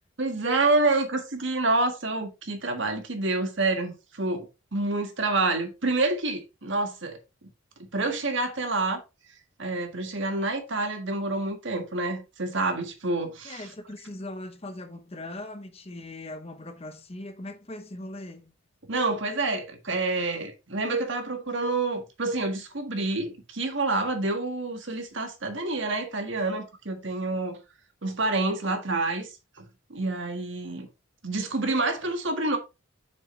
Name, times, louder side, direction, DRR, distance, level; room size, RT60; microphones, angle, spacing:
voice 1, 0.2-7.2 7.8-9.0 9.6-13.7 18.9-27.6 28.0-29.3 29.6-29.7 29.9-30.9 31.2-32.6, right 2 dB, 60° right, 1.7 m, -28 dB
voice 2, 13.4-18.5, left 1 dB, 30° left, 0.9 m, -40 dB
7.0 x 6.6 x 3.3 m
head